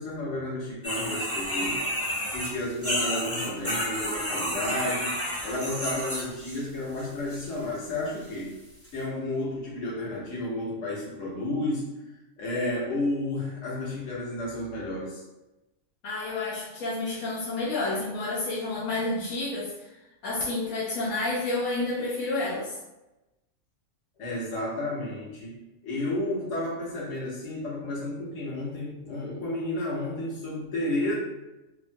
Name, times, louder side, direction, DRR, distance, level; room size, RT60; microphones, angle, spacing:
voice 1, 0.0-1.8 2.3-5.2 5.4-8.5 8.9-11.9 12.4-15.2 24.2-31.1, left 1 dB, 65° left, -5 dB, 1.2 m, -32 dB
sound 1, 0.8-6.6 7.0-7.5 8.2-8.3 8.8-8.9, equal, 20° left, 0.4 m, -31 dB
voice 2, 16.0-19.7 20.2-22.8, left 2 dB, 85° left, -6 dB, 1.0 m, -30 dB
2.9 x 2.1 x 2.6 m, 1.0 s
omnidirectional pair, 1.4 m